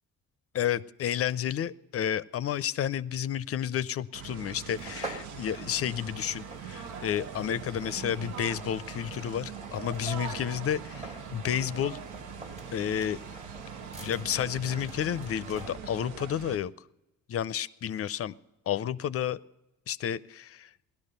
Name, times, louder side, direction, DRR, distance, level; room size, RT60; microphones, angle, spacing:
voice 1, 0.5-12.0 12.7-13.2 14.0-16.7 17.3-18.3 18.7-19.4 19.9-20.7, left 9 dB, 50° left, 19 dB, 0.5 m, -31 dB
sound 1, 4.1-16.6, right 7 dB, 75° right, 0.9 m, -42 dB
sound 2, 4.8-16.1, right 2 dB, 20° right, 1.4 m, -46 dB
16.5 x 12.0 x 6.7 m, 0.95 s
cardioid pair, 90°, 30 cm